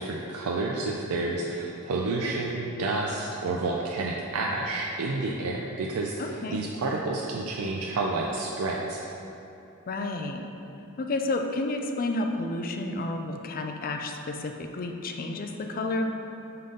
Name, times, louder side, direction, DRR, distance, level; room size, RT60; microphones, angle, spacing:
voice 1, 0.0-9.0, right 2 dB, 75° right, -2 dB, 0.5 m, -30 dB
voice 2, 6.2-6.6 9.9-10.4 11.0-16.1, left 2 dB, 40° left, 4 dB, 0.4 m, -31 dB
5.6 x 3.9 x 5.2 m, 2.9 s
head